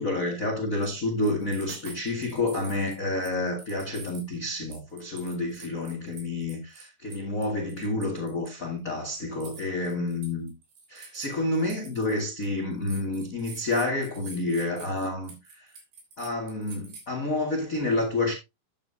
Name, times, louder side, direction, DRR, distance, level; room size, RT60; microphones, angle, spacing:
voice 1, 0.0-10.5 10.9-15.7 16.2-18.3, left 2 dB, 45° left, 1.1 m, -29 dB
sound 1, 0.8-1.0 1.2-3.0 3.2-4.4 4.7-8.5 9.3-12.5 12.8-17.1, right 4 dB, 70° right, 5.1 m, -47 dB
10.5 x 9.1 x 2.7 m
omnidirectional pair, 4.7 m